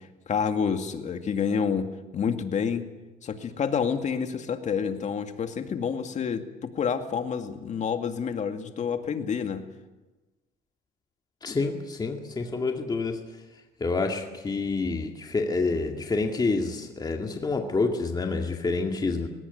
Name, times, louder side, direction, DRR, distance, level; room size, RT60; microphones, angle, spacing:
voice 1, 0.3-2.8 3.2-9.6, left 6 dB, 45° left, 6 dB, 2.3 m, -28 dB
voice 2, 11.4-13.2 13.8-19.3, left 3 dB, 25° left, 3 dB, 2.2 m, -28 dB
20.0 x 18.5 x 9.4 m, 1.2 s
cardioid pair, 110°, 17 cm